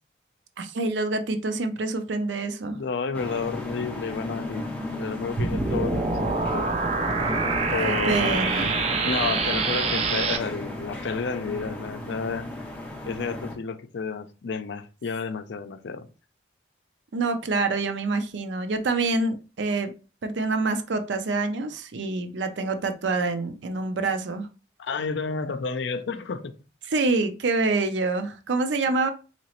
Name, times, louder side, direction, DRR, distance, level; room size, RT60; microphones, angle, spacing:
voice 1, 0.6-2.8 7.8-8.7 17.1-19.9 20.2-24.5 26.9-29.1, right 3 dB, 90° right, 0.5 m, -26 dB
voice 2, 2.7-6.7 7.7-8.7 9.0-12.5 13.1-16.1 24.8-26.6, left 5 dB, 80° left, 0.4 m, -31 dB
sound 1, 3.1-13.5, left 1 dB, 10° left, 0.7 m, -35 dB
sound 2, 5.4-10.4, right 4 dB, 35° right, 0.4 m, -25 dB
3.9 x 2.9 x 2.9 m
head